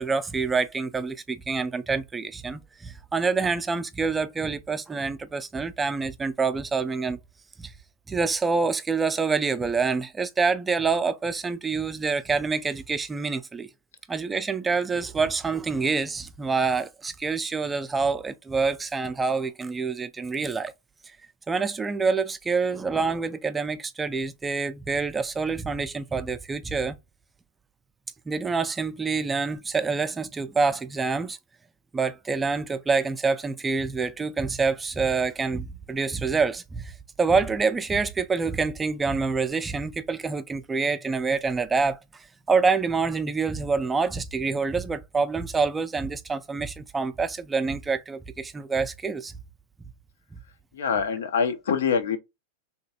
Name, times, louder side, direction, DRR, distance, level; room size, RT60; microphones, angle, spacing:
voice 1, 0.0-7.2 7.6-7.7 8.1-13.7 14.1-20.7 21.5-27.0 28.3-31.4 31.9-36.9 37.2-42.0 42.5-49.3, right 4 dB, 10° right, 0.3 m, -26 dB
voice 2, 50.7-52.2, left 6 dB, 85° left, 0.7 m, -25 dB
3.2 x 2.9 x 2.7 m
supercardioid pair, 145°, 0 cm